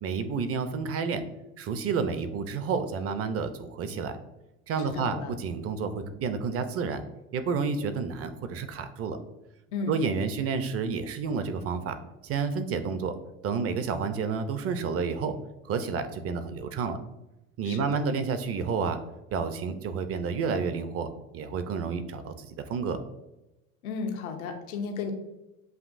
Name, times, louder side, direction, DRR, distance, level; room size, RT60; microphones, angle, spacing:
voice 1, 0.0-1.2 1.6-4.2 4.7-7.0 7.3-9.2 9.9-12.0 12.2-13.1 13.4-15.4 15.6-17.0 17.6-19.0 19.3-21.1 21.3-23.0, right 5 dB, 35° right, 10 dB, 0.6 m, -30 dB
voice 2, 4.8-5.3 9.7-10.0 17.6-18.0 23.8-25.1, left 5 dB, 85° left, 5 dB, 0.9 m, -34 dB
7.5 x 2.7 x 2.5 m, 0.95 s
supercardioid pair, 100°, 41 cm